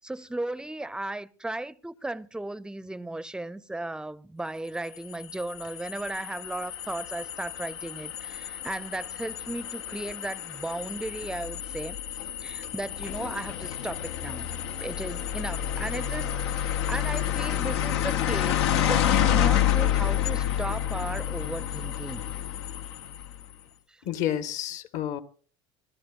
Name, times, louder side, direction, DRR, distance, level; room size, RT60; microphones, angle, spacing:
voice 1, 0.0-12.0 12.4-14.5 14.8-22.3 23.9-24.0, right 2 dB, 5° right, 0.6 m, -36 dB
sound 1, 4.9-23.4, left 10 dB, 80° left, 0.8 m, -29 dB
voice 2, 24.0-25.2, left 11 dB, 60° left, 1.4 m, -30 dB
28.5 x 13.5 x 2.5 m
hypercardioid pair, 80°, 14 cm